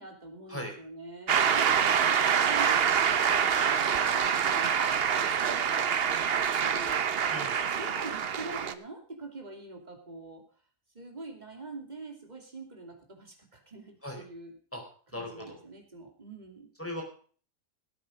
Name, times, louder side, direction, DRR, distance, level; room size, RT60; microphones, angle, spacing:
voice 1, 0.0-3.7 4.0-7.0 7.6-10.4 10.9-14.5 15.1-16.7, right 3 dB, 25° right, 3 dB, 2.8 m, -45 dB
Shout / Cheering / Applause, 1.3-8.7, right 7 dB, 50° right, 0.8 m, -26 dB
voice 2, 15.1-15.6 16.8-17.0, left 1 dB, 10° left, 1 dB, 4.2 m, -38 dB
18.0 x 8.5 x 5.2 m, 0.44 s
omnidirectional pair, 1.7 m